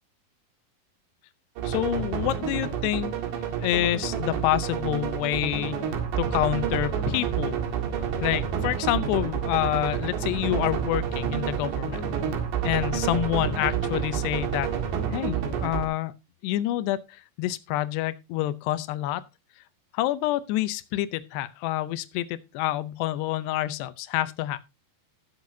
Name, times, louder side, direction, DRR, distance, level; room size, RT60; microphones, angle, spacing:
voice 1, 1.6-3.1 3.6-5.8 6.2-7.6 8.2-12.0 12.6-14.7 15.1-16.1 16.4-19.2 19.9-24.6, left 14 dB, 85° left, 2.9 m, -27 dB
sound 1, 1.6-15.9, right 8 dB, 85° right, 4.0 m, -29 dB
19.0 x 6.7 x 2.7 m
omnidirectional pair, 4.7 m